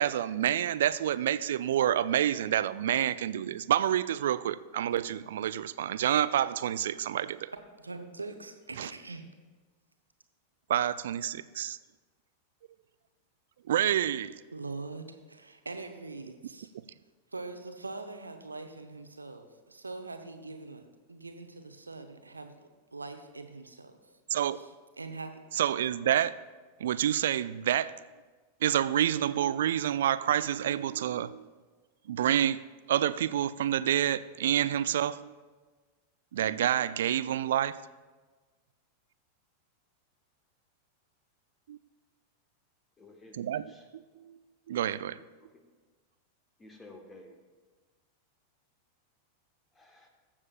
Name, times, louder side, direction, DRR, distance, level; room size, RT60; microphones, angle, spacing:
voice 1, 0.0-7.5 8.8-8.9 10.7-11.8 13.7-14.4 24.3-24.6 25.5-26.4 26.8-27.9 28.6-31.4 32.1-32.6 32.9-35.3 36.3-37.8 41.7-41.8 43.3-43.6 43.9-44.4 44.7-45.2, right 11 dB, 60° right, 16 dB, 0.3 m, -28 dB
voice 2, 7.8-9.3 14.5-16.7 17.3-24.0 24.5-25.4, right 3 dB, 80° right, 6 dB, 0.9 m, -43 dB
voice 3, 43.0-43.9 46.6-47.3 49.7-50.1, left 2 dB, 15° left, 3 dB, 1.4 m, -52 dB
21.5 x 7.3 x 2.5 m, 1.3 s
figure-of-eight pair, 90°, 0 cm